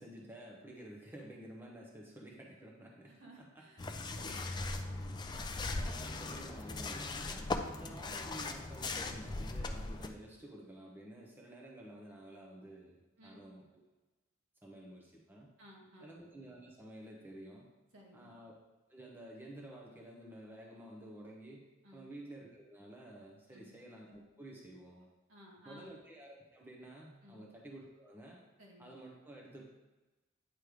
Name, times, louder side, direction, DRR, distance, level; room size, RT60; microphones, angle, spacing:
voice 1, 0.0-3.4 5.2-13.8 14.6-15.5 16.0-17.7 18.1-18.5 18.9-25.1 25.6-28.4 28.8-29.7, right 1 dB, 10° right, -2 dB, 0.8 m, -52 dB
voice 2, 3.1-5.1 13.2-13.4 15.6-16.2 17.9-18.3 21.8-22.1 23.5-23.7 25.3-25.9 27.2-27.4 28.6-29.0, equal, 70° right, -4 dB, 2.1 m, -58 dB
sound 1, 3.8-10.1, left 3 dB, 20° left, 0.4 m, -39 dB
9.2 x 3.3 x 4.9 m, 1.1 s
head